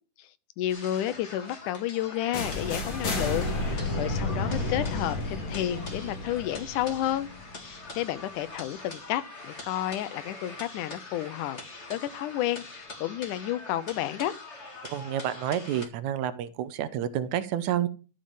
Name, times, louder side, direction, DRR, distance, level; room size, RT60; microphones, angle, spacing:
voice 1, 0.6-7.3 7.6-11.6 11.9-14.3, left 13 dB, 90° left, 2.3 m, -31 dB
sound 1, 0.7-15.9, left 2 dB, 30° left, 1.7 m, -44 dB
sound 2, 2.3-8.2, left 2 dB, 45° left, 3.2 m, -32 dB
voice 2, 14.9-17.9, right 10 dB, 80° right, 2.1 m, -29 dB
13.0 x 5.3 x 7.3 m
omnidirectional pair, 3.5 m